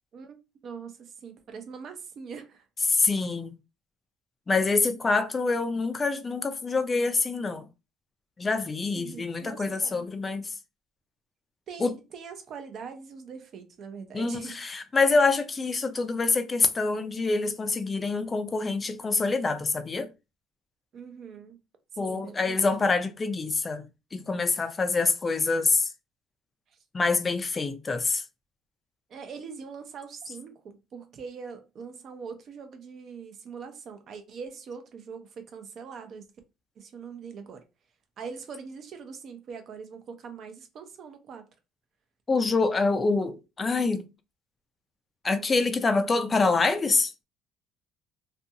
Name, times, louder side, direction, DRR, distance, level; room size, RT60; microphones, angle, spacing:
voice 1, 0.6-2.7 8.9-10.0 11.7-14.6 20.9-21.6 22.0-22.6 26.7-26.8 29.1-36.3 36.8-37.6 38.2-41.5, right 6 dB, 45° right, 0.6 m, -42 dB
voice 2, 2.9-3.5 4.5-7.6 8.4-10.5 11.8-11.9 14.1-20.1 22.0-23.8 24.1-25.9 26.9-28.2 42.3-44.1 45.2-47.1, left 3 dB, 20° left, 0.4 m, -26 dB
2.5 x 2.3 x 2.7 m
cardioid pair, 140°, 0 cm